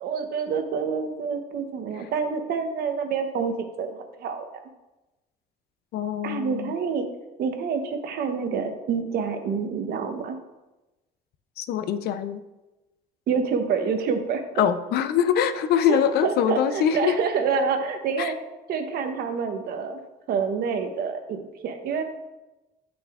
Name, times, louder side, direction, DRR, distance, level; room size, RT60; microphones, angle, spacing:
voice 1, 0.0-4.6 6.2-7.1 7.4-10.4 13.3-14.4 15.9-18.3 18.7-20.0 20.3-22.0, right 6 dB, 65° right, 6 dB, 0.8 m, -27 dB
voice 2, 5.9-6.8 11.6-12.4 14.6-17.2 18.2-18.3, left 9 dB, 70° left, 11 dB, 0.5 m, -23 dB
8.0 x 6.0 x 2.4 m, 1.0 s
cardioid pair, 110°, 17 cm